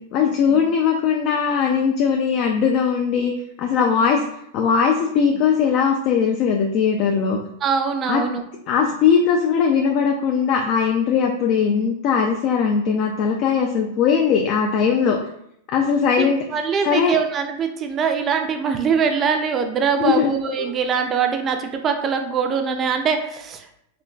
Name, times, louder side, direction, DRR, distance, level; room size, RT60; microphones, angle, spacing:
voice 1, 0.1-3.3 3.6-4.2 4.5-7.4 8.1-8.2 8.7-15.2 15.7-16.4 16.8-17.2 20.0-20.3 20.6-20.7, left 6 dB, 45° left, 1 dB, 0.3 m, -19 dB
voice 2, 7.6-8.4 16.2-23.7, right 6 dB, 30° right, 5 dB, 0.3 m, -22 dB
3.7 x 2.1 x 2.2 m, 0.74 s
hypercardioid pair, 120°, 0 cm